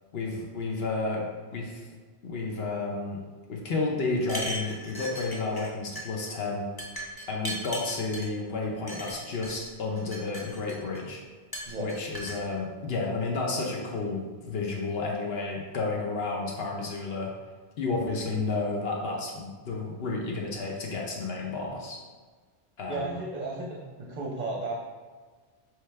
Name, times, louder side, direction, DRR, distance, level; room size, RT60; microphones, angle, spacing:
voice 1, 0.1-1.8 2.2-3.2 3.5-6.7 7.3-11.2 11.8-17.3 17.8-22.0 22.8-23.2, left 3 dB, 65° left, -1 dB, 0.9 m, -31 dB
sound 1, 4.2-5.7 5.9-6.3 6.8-8.3 8.9-9.5 10.0-11.0 11.5-12.4, equal, 30° left, 0.5 m, -37 dB
voice 2, 22.9-24.7, right 2 dB, 45° right, -3 dB, 0.7 m, -34 dB
4.4 x 3.3 x 3.2 m, 1.4 s
omnidirectional pair, 1.2 m